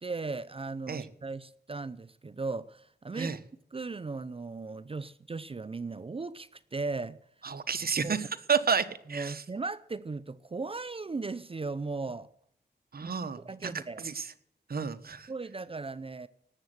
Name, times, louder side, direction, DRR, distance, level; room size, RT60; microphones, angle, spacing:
voice 1, 0.0-3.3 3.7-7.2 8.0-8.2 9.1-12.3 13.0-13.1 13.4-14.0 15.3-16.3, right 3 dB, 30° right, 0.6 m, -37 dB
voice 2, 7.4-9.4 12.9-14.3 14.7-15.3, right 6 dB, 60° right, 1.2 m, -31 dB
18.5 x 7.8 x 7.9 m
cardioid pair, 70°, 18 cm